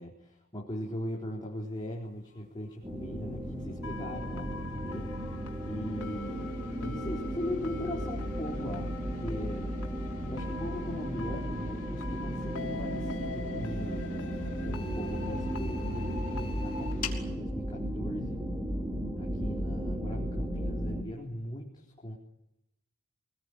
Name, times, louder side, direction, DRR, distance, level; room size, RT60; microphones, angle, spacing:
voice 1, 0.0-5.1 5.7-9.9 10.3-14.1 14.7-18.4 19.2-22.1, left 1 dB, 20° left, -2 dB, 4.1 m, -39 dB
sound 1, 1.6-17.3, left 6 dB, 40° left, 4.5 m, -51 dB
sound 2, 2.8-21.0, equal, 15° right, 3.2 m, -35 dB
sound 3, 3.8-16.9, left 4 dB, 85° left, 4.3 m, -44 dB
25.5 x 21.0 x 9.9 m, 0.88 s
head